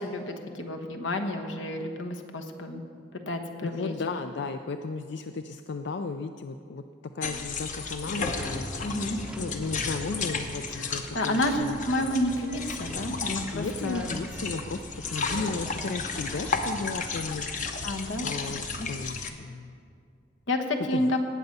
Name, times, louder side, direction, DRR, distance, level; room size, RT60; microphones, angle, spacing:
voice 1, 0.0-2.8 3.3-3.9 8.8-9.2 11.1-14.1 17.8-18.2 18.8-18.9 20.5-21.2, left 1 dB, 75° left, 4 dB, 1.2 m, -30 dB
voice 2, 3.6-6.8 7.1-8.7 9.4-11.8 13.5-14.8 15.1-17.5 18.2-19.8 20.9-21.1, left 4 dB, 60° left, 8 dB, 0.4 m, -34 dB
sound 1, 7.2-19.3, left 4 dB, 40° left, 0.9 m, -34 dB
sound 2, 8.2-17.9, equal, 5° right, 0.6 m, -44 dB
18.5 x 8.0 x 5.4 m, 2.3 s
head